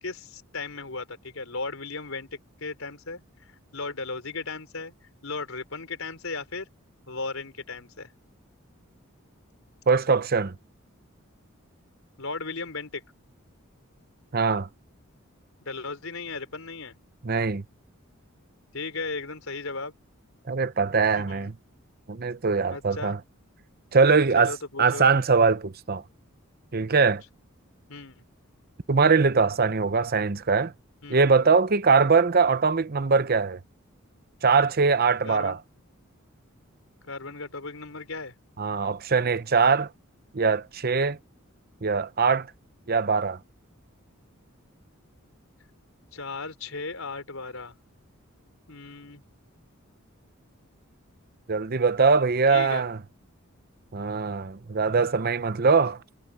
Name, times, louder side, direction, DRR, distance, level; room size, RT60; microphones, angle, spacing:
voice 1, 0.0-4.9 5.2-6.7 7.1-8.1 12.2-13.0 15.6-16.9 18.7-19.9 21.2-21.5 22.7-23.2 24.3-25.1 27.9-28.2 31.0-31.3 35.2-35.6 37.0-38.3 46.1-47.7 48.7-49.2 52.5-52.9, left 3 dB, 80° left, 4.3 m, -36 dB
voice 2, 9.9-10.5 14.3-14.7 17.2-17.6 20.5-21.5 22.1-23.2 23.9-26.0 26.7-27.2 28.9-30.7 31.1-33.6 34.4-35.6 38.6-39.9 40.3-41.2 41.8-42.5 42.9-43.4 51.5-53.0 53.9-56.0, right 4 dB, 45° right, 0.8 m, -22 dB
head